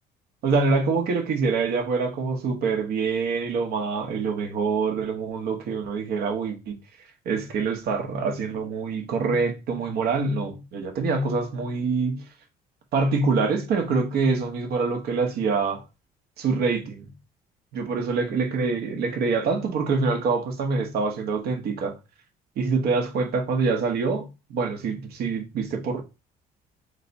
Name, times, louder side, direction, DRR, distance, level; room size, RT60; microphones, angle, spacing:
voice 1, 0.4-6.8 7.2-12.2 12.9-15.8 16.4-17.1 17.7-22.0 22.6-26.0, right 4 dB, 65° right, 1.1 m, -25 dB
3.4 x 3.2 x 4.0 m
cardioid pair, 110°, 17 cm